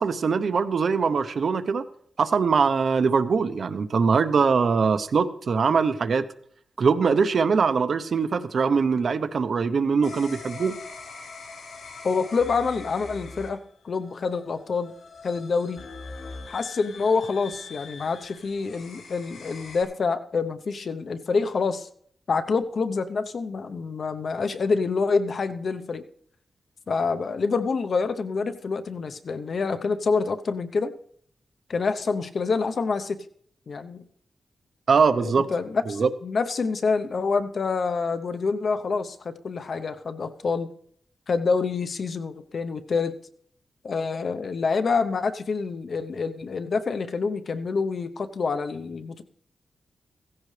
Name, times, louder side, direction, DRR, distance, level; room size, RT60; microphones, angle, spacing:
voice 1, 0.0-1.8 2.2-6.2 6.8-10.7 34.9-35.5 35.9-36.1, right 5 dB, 55° right, 10 dB, 0.8 m, -22 dB
sound 1, 10.0-19.8, left 4 dB, 90° left, 4.6 m, -43 dB
voice 2, 12.0-13.6 13.8-14.9 15.2-15.8 16.5-21.9 22.3-26.0 26.9-30.9 31.7-33.2 33.7-34.0 35.2-40.7 41.3-43.1 43.8-49.2, left 4 dB, 55° left, 9 dB, 0.8 m, -27 dB
16.0 x 15.5 x 3.3 m, 0.64 s
wide cardioid pair, 145°, 0 cm